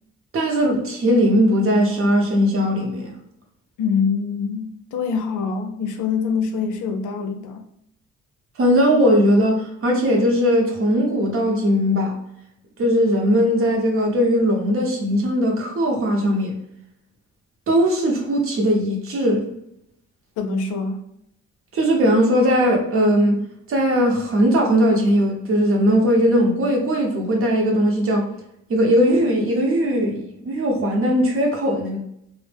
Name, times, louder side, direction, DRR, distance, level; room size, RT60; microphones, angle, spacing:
voice 1, 0.3-3.2 8.6-12.2 12.8-16.5 17.7-19.4 21.7-23.4 23.7-28.3 28.7-32.0, equal, 45° right, 0.8 m, -19 dB
voice 2, 3.8-7.6 20.4-21.0, left 5 dB, 80° left, 0.5 m, -24 dB
2.1 x 2.0 x 3.3 m
cardioid pair, 90°, 30 cm